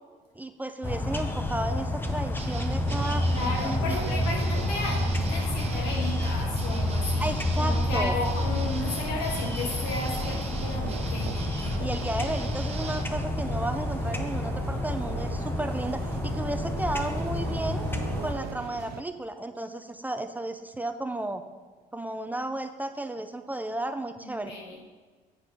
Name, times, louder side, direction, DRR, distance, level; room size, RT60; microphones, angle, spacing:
voice 1, 0.3-3.3 3.6-4.2 7.2-8.1 11.8-17.8 18.2-21.4 21.9-24.5, right 1 dB, 10° right, 8 dB, 0.5 m, -33 dB
sound 1, 0.8-18.3, left 1 dB, 10° left, 0.8 m, -29 dB
sound 2, 2.4-13.0, right 3 dB, 40° right, 1.1 m, -41 dB
sound 3, 2.8-19.0, right 9 dB, 70° right, 0.5 m, -40 dB
voice 2, 3.2-11.9 24.2-24.8, left 2 dB, 90° left, 0 dB, 2.0 m, -34 dB
8.6 x 4.8 x 5.9 m, 1.5 s
cardioid pair, 110°, 17 cm